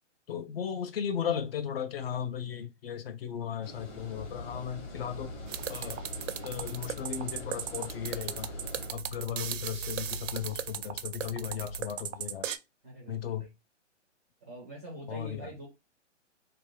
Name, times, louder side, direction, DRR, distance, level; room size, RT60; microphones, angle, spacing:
voice 1, 0.3-5.3 5.7-6.0 6.4-8.6 8.9-12.5 13.1-13.5 15.1-15.5, left 8 dB, 55° left, 0.5 m, -36 dB
Water, 3.6-8.9, left 2 dB, 20° left, 0.8 m, -46 dB
sound 1, 4.1-11.8, left 1 dB, 70° left, 0.9 m, -44 dB
sound 2, 5.5-12.6, right 10 dB, 75° right, 0.5 m, -37 dB
voice 2, 12.8-13.2 14.4-15.7, right 1 dB, 15° right, 0.4 m, -44 dB
2.5 x 2.3 x 3.2 m
hypercardioid pair, 145°, 37 cm